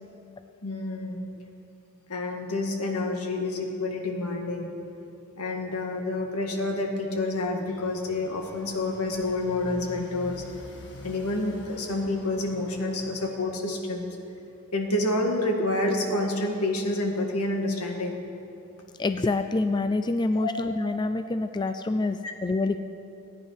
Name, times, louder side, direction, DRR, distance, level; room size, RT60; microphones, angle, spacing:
voice 1, 0.6-1.2 2.1-4.8 5.4-10.4 11.0-14.2 14.7-18.2 20.4-20.5, left 2 dB, 85° left, 2 dB, 1.8 m, -28 dB
Motorcycle, 7.6-13.5, left 1 dB, 55° left, 1.6 m, -46 dB
voice 2, 19.0-22.8, left 2 dB, 20° left, 9 dB, 0.3 m, -26 dB
17.0 x 9.6 x 5.7 m, 2.9 s
head